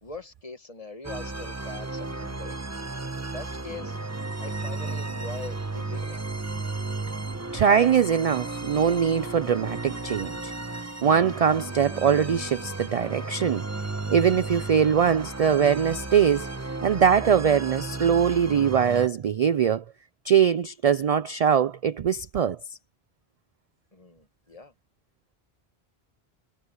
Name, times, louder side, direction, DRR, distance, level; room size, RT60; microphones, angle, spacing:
voice 1, 0.0-2.6 3.2-4.0 4.4-6.2 23.9-24.7, left 3 dB, 35° left, 1.6 m, -42 dB
sound 1, 1.0-19.1, right 3 dB, 15° right, 1.0 m, -34 dB
voice 2, 7.5-10.5 11.0-13.6 14.1-16.5 16.8-19.8 20.2-22.6, right 7 dB, 55° right, 0.4 m, -22 dB
omnidirectional pair, 1.1 m